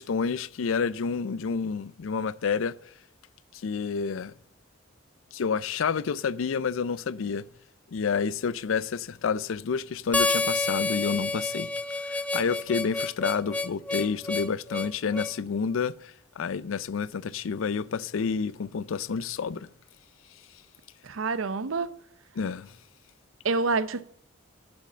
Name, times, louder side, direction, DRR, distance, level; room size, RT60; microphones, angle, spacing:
voice 1, 0.0-2.7 3.6-4.3 5.3-7.4 7.9-19.7 22.4-22.7, left 5 dB, 80° left, 0.4 m, -29 dB
Harmonica, 10.1-15.4, left 3 dB, 5° left, 0.3 m, -29 dB
voice 2, 21.0-21.9 23.4-24.0, right 4 dB, 80° right, 0.6 m, -27 dB
7.6 x 7.0 x 6.6 m
head